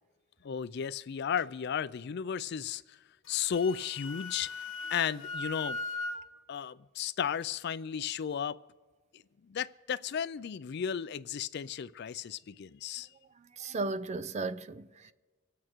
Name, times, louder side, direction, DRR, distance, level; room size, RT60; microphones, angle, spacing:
voice 1, 0.4-3.0 3.3-4.5 4.9-5.8 6.5-8.6 9.1-13.1, left 7 dB, 55° left, 0.4 m, -34 dB
Wind instrument woodwind instrument, 3.3-6.2, left 3 dB, 80° left, 1.3 m, -38 dB
voice 2, 13.4-15.1, right 3 dB, 35° right, 0.5 m, -36 dB
25.5 x 8.6 x 4.5 m
head